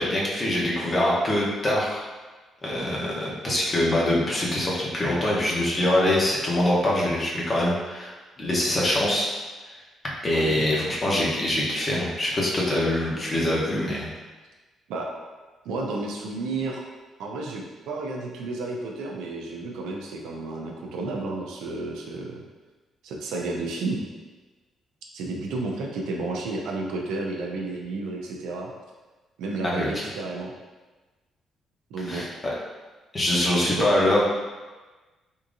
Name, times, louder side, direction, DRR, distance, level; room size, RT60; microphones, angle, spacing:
voice 1, 0.0-2.0 2.6-8.1 8.4-9.3 10.2-14.1 29.6-30.0 32.0-32.3 33.1-34.2, left 1 dB, 30° left, -4 dB, 0.9 m, -24 dB
voice 2, 10.3-10.7 14.9-15.1 15.6-16.8 17.2-22.4 23.0-24.1 25.1-28.7 29.4-30.5 31.9-32.2 33.6-33.9, right 3 dB, 90° right, 0 dB, 0.5 m, -31 dB
3.5 x 2.8 x 2.5 m, 1.2 s
cardioid pair, 90°, 0 cm